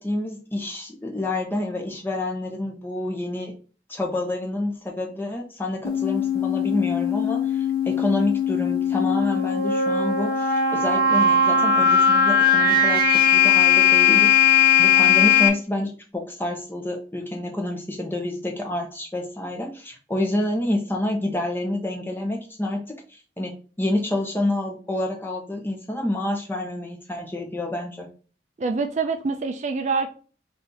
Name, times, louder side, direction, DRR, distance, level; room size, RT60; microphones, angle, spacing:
voice 1, 0.0-3.5 3.9-14.3 14.8-28.1, left 1 dB, 10° left, 1 dB, 0.9 m, -28 dB
sound 1, 5.8-15.5, left 6 dB, 55° left, 1.0 m, -19 dB
voice 2, 28.6-30.1, right 4 dB, 40° right, 7 dB, 0.4 m, -25 dB
4.2 x 2.6 x 3.9 m, 0.38 s
head